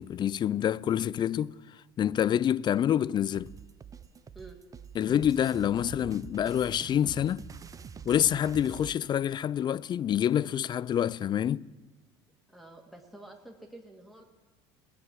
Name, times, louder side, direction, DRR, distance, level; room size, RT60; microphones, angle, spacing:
voice 1, 0.0-3.5 5.0-7.5 8.1-11.7, left 10 dB, 35° left, 0.4 m, -27 dB
sound 1, 3.3-9.0, right 7 dB, 25° right, 0.6 m, -46 dB
voice 2, 12.5-14.2, right 2 dB, ahead, 1.7 m, -49 dB
18.0 x 7.6 x 6.1 m
hypercardioid pair, 75°, 13 cm